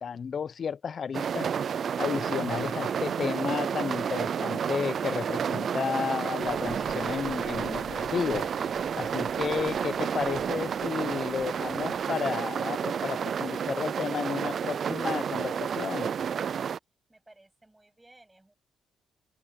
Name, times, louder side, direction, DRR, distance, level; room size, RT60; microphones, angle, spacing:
voice 1, 0.0-1.5 2.0-16.1, left 6 dB, 50° left, 0.7 m, -32 dB
sound 1, 1.1-16.8, right 7 dB, 55° right, 0.3 m, -30 dB
sound 2, 6.4-12.1, left 13 dB, 85° left, 1.1 m, -51 dB
voice 2, 17.1-18.5, right 2 dB, 10° right, 7.9 m, -57 dB
open air
cardioid pair, 90°, 0 cm